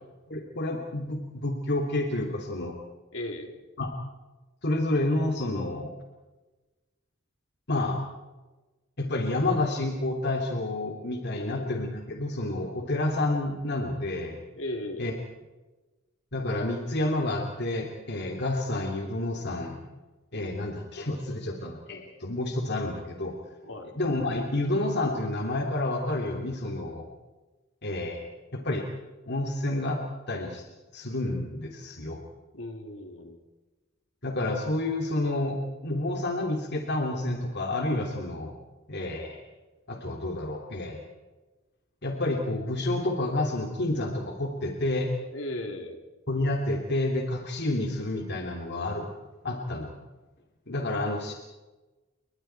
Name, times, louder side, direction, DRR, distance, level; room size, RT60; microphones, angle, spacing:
voice 1, 0.3-2.7 3.8-3.9 4.6-5.9 7.7-8.0 9.0-14.4 15.0-15.1 16.3-19.8 20.3-23.3 24.0-27.1 27.8-28.9 29.3-30.0 30.3-30.6 30.9-32.2 34.2-38.6 38.9-39.4 39.9-41.1 42.0-45.1 46.3-49.1 49.4-49.9 50.7-51.3, left 2 dB, 55° left, 2 dB, 3.0 m, -29 dB
voice 2, 3.1-3.6 11.3-11.8 14.6-15.1 23.6-24.0 32.5-33.4 45.3-46.0, left 1 dB, 70° left, 3 dB, 3.7 m, -37 dB
29.5 x 24.0 x 4.6 m, 1.2 s
head